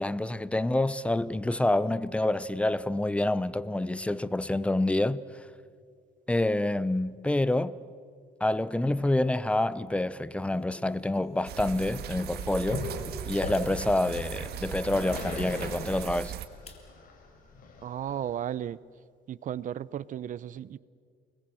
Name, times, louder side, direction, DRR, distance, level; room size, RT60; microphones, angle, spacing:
voice 1, 0.0-5.2 6.3-7.8 8.4-12.9 13.3-16.3, left 1 dB, 5° left, 0.7 m, -27 dB
sound 1, 9.9-10.0 10.5-12.6 13.0-13.1 13.5-13.7 14.3-14.4 14.9-15.0 15.3-16.1 16.6-16.8 17.2-18.1, left 3 dB, 35° left, 3.3 m, -53 dB
sound 2, 11.5-16.5, right 10 dB, 70° right, 1.8 m, -38 dB
Growling, 12.7-18.5, left 3 dB, 55° left, 5.4 m, -39 dB
voice 2, 17.8-18.8 19.3-20.8, right 10 dB, 50° right, 0.6 m, -34 dB
28.5 x 21.0 x 7.7 m
cardioid pair, 110°, 17 cm